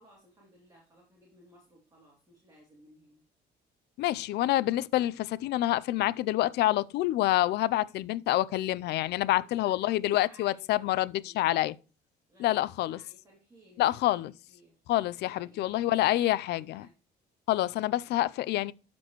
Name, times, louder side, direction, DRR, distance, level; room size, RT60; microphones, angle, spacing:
voice 1, 0.0-3.2 9.1-9.9 10.1-11.5 12.3-14.7 15.3-15.8 16.1-16.9, equal, 20° right, 2.9 m, -59 dB
voice 2, 4.0-11.8 12.4-13.0 13.8-14.3 14.9-16.9 17.5-18.7, left 15 dB, 75° left, 0.5 m, -27 dB
12.0 x 4.4 x 3.0 m
cardioid pair, 120°, 17 cm